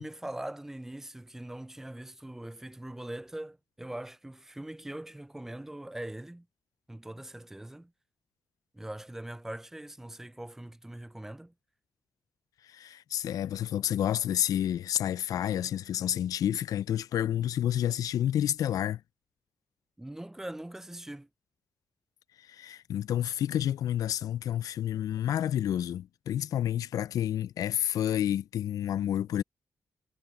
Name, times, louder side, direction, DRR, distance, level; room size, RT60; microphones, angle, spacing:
voice 1, 0.0-6.5 6.9-7.9 8.7-11.5 20.0-21.3, right 1 dB, 5° right, 0.4 m, -42 dB
voice 2, 12.6-19.0 22.4-29.4, left 11 dB, 85° left, 0.4 m, -29 dB
wide cardioid pair, 135°, 6 cm